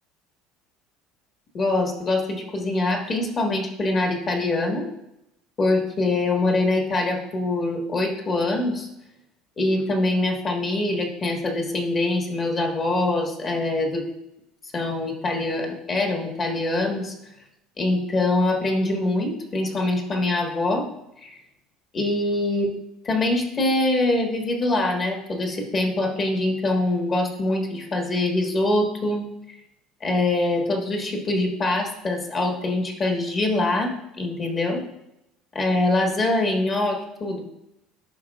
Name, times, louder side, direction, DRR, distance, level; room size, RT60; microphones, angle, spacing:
voice 1, 1.5-4.9 5.6-8.9 9.6-14.0 14.7-17.1 17.8-20.9 21.2-21.4 21.9-22.7 23.0-29.6 30.0-34.8 35.5-37.4, left 2 dB, 30° left, 3 dB, 1.3 m, -24 dB
11.0 x 5.2 x 2.3 m, 0.86 s
cardioid pair, 130°, 0 cm